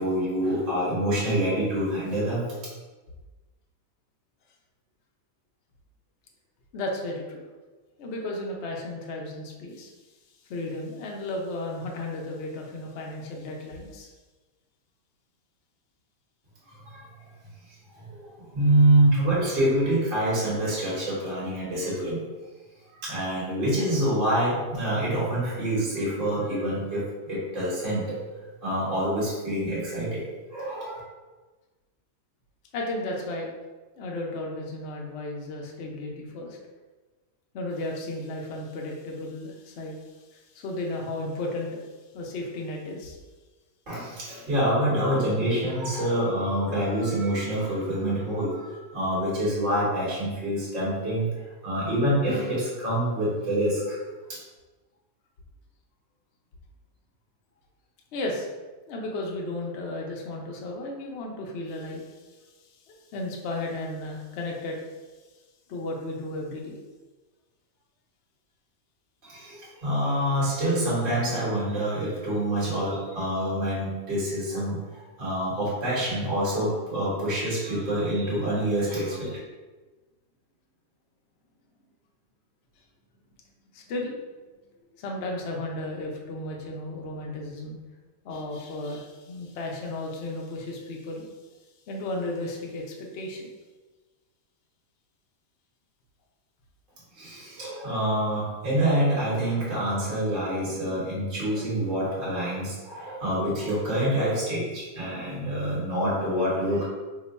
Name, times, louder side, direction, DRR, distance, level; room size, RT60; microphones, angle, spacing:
voice 1, 0.0-2.5 16.7-17.1 18.0-22.2 23.0-28.2 28.6-30.2 30.5-31.0 43.9-51.3 51.6-53.9 69.2-79.4 97.1-106.8, right 1 dB, 35° right, -8 dB, 1.2 m, -26 dB
voice 2, 6.7-7.4 8.0-9.9 10.5-14.1 32.7-33.5 34.0-36.6 37.5-40.0 40.3-41.8 42.1-43.2 58.1-58.5 58.9-62.3 62.9-64.8 65.7-66.8 83.7-84.2 85.0-87.8 88.2-91.3 91.9-93.5, left 2 dB, 70° left, -1 dB, 0.6 m, -34 dB
2.9 x 2.1 x 3.9 m, 1.3 s
omnidirectional pair, 1.7 m